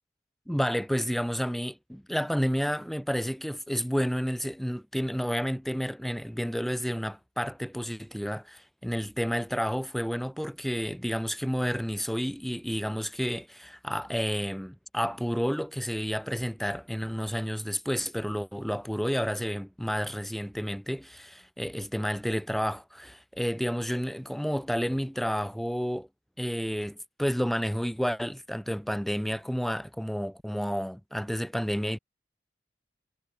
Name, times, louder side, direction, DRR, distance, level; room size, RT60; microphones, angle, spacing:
voice 1, 0.5-26.1 26.4-32.0, equal, ahead, 1.4 m, -30 dB
head